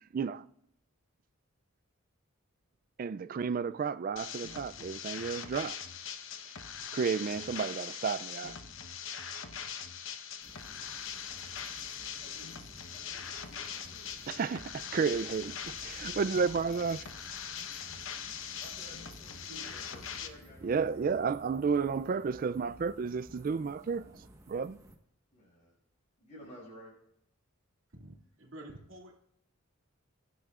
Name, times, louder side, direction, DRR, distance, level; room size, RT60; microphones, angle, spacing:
voice 1, 0.1-0.4 3.0-5.8 6.9-8.6 14.3-17.1 20.6-24.8, right 5 dB, 40° right, 0.3 m, -32 dB
sound 1, 4.2-20.3, left 8 dB, 70° left, 1.0 m, -42 dB
sound 2, 10.4-25.0, right 1 dB, 15° right, 1.3 m, -55 dB
voice 2, 12.9-14.3 18.6-21.2 25.3-25.7 26.2-26.9, equal, 35° left, 6.0 m, -53 dB
voice 3, 28.0-29.2, right 1 dB, 70° right, 2.3 m, -49 dB
21.5 x 10.0 x 2.4 m
head